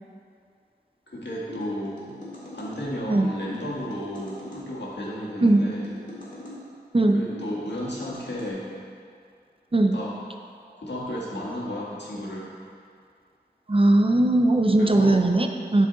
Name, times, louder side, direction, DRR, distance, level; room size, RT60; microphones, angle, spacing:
voice 1, 1.1-2.2 2.5-5.9 7.1-8.7 9.9-10.1 10.7-12.5 14.8-15.2, equal, 90° left, -6 dB, 1.6 m, -33 dB
sound 1, 1.5-2.7 3.4-4.7 5.4-6.6 7.3-8.5, left 2 dB, 45° left, 2.2 m, -41 dB
voice 2, 13.7-15.9, right 2 dB, 30° right, 4 dB, 0.6 m, -19 dB
11.0 x 4.8 x 4.0 m, 2.3 s
wide cardioid pair, 60°, 17 cm